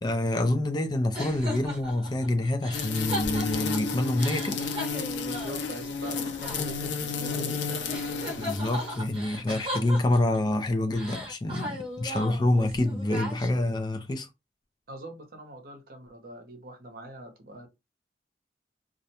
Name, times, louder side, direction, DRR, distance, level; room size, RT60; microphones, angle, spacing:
voice 1, 0.0-4.6 8.4-14.3, left 1 dB, 25° left, 0.3 m, -27 dB
sound 1, 1.1-7.6 7.9-10.5 10.9-13.8, equal, 30° right, 0.9 m, -38 dB
sound 2, 2.7-9.1, left 5 dB, 85° left, 0.5 m, -32 dB
voice 2, 5.2-8.4 14.9-17.7, right 1 dB, 55° right, 0.7 m, -43 dB
2.4 x 2.1 x 2.8 m
head